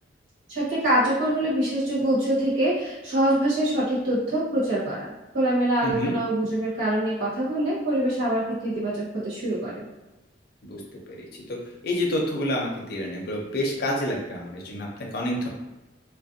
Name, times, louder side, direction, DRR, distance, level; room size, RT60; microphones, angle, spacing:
voice 1, 0.5-9.8, right 1 dB, 85° right, -10 dB, 1.1 m, -24 dB
voice 2, 5.8-6.1 10.6-10.8 11.1-11.6 11.8-14.9 15.1-15.5, left 1 dB, 55° left, -1 dB, 0.5 m, -28 dB
2.4 x 2.1 x 2.6 m, 1.0 s
head